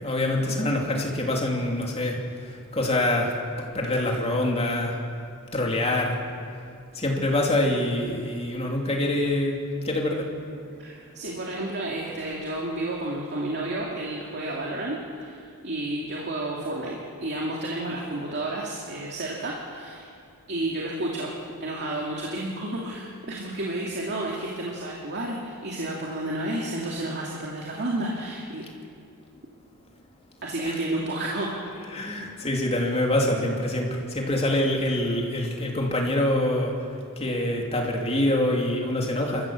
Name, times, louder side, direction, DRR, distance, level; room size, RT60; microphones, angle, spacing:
voice 1, 0.0-5.0 5.5-6.2 6.9-9.6 9.8-10.3 30.6-30.8 31.9-39.5, left 1 dB, 30° left, 0 dB, 2.9 m, -25 dB
voice 2, 10.8-20.1 20.5-21.3 21.6-28.6 30.4-31.6, right 1 dB, 50° right, -3 dB, 2.4 m, -31 dB
27.0 x 14.5 x 7.3 m, 2.4 s
head